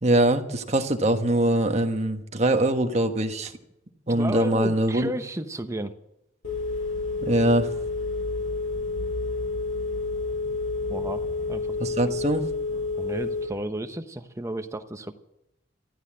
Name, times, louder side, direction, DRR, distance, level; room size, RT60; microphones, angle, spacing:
voice 1, 0.0-3.5 4.1-5.1 7.2-7.7 11.8-12.5, right 1 dB, 35° right, 6 dB, 1.3 m, -23 dB
voice 2, 4.1-5.9 10.9-11.8 13.0-15.1, right 1 dB, 15° right, 8 dB, 0.8 m, -33 dB
Telephone, 6.4-13.4, left 3 dB, 85° left, 5.9 m, -29 dB
14.0 x 13.5 x 7.6 m, 0.84 s
head